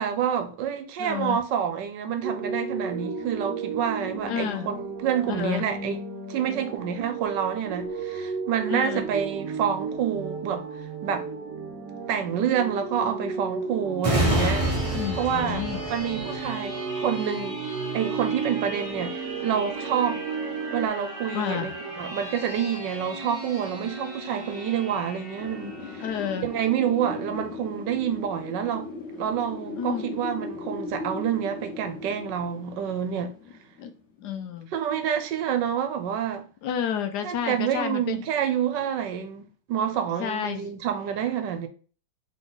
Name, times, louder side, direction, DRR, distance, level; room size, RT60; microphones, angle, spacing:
voice 1, 0.0-6.0 6.3-10.7 11.0-11.3 12.1-14.7 15.1-17.6 17.9-20.2 20.7-26.1 26.4-28.9 29.2-33.3 34.7-36.5 37.2-41.7, right 8 dB, 80° right, 1.3 m, -28 dB
voice 2, 1.0-1.4 4.2-4.7 5.3-5.7 8.7-9.1 14.9-15.8 21.3-21.7 26.0-26.5 29.8-30.1 33.8-33.9 34.2-34.7 36.6-38.3 40.2-40.7, left 8 dB, 70° left, 1.1 m, -30 dB
sound 1, 2.2-20.9, right 5 dB, 60° right, 1.1 m, -34 dB
sound 2, 14.0-27.3 27.8-27.9, equal, 25° right, 0.7 m, -32 dB
Wind, 25.4-34.1, left 2 dB, 45° left, 1.1 m, -38 dB
3.8 x 3.4 x 3.9 m
omnidirectional pair, 2.0 m